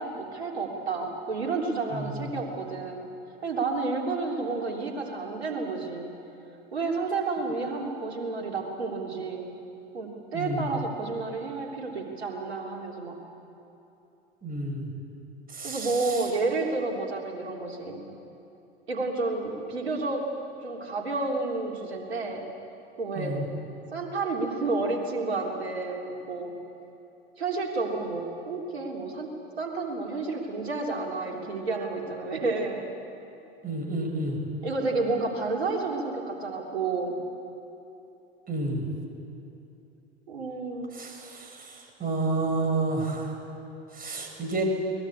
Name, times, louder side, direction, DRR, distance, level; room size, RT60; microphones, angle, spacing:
voice 1, 0.0-3.0 3.4-6.1 6.7-9.5 9.9-13.2 15.6-18.0 18.9-20.2 20.6-22.4 23.0-23.4 23.9-26.5 27.4-29.3 29.6-32.8 34.6-37.2 40.3-41.0, right 3 dB, 85° right, 0 dB, 3.4 m, -30 dB
voice 2, 10.3-10.7 14.4-14.9 15.5-16.2 23.2-23.4 33.6-34.4 38.5-38.9 41.0-41.7 42.0-43.3 43.9-44.6, right 2 dB, 30° right, 3 dB, 5.4 m, -30 dB
23.0 x 20.0 x 8.3 m, 2.9 s
figure-of-eight pair, 80°, 31 cm